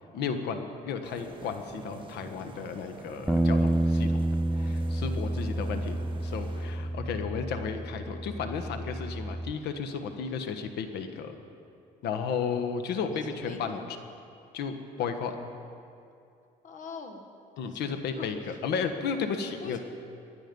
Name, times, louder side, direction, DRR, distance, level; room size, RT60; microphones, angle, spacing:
voice 1, 0.1-4.2 4.5-11.3 12.0-13.8 14.5-15.4 17.6-19.8, left 6 dB, 75° left, 7 dB, 1.4 m, -33 dB
sound 1, 1.0-6.9, right 3 dB, 30° right, 1.2 m, -47 dB
Bass guitar, 3.3-9.5, right 1 dB, 5° right, 0.3 m, -29 dB
voice 2, 5.2-5.7 13.0-14.0 16.6-17.3 17.6-18.6 19.6-19.8, left 4 dB, 50° left, 5 dB, 1.7 m, -44 dB
20.0 x 11.5 x 5.4 m, 2.5 s
cardioid pair, 110°, 17 cm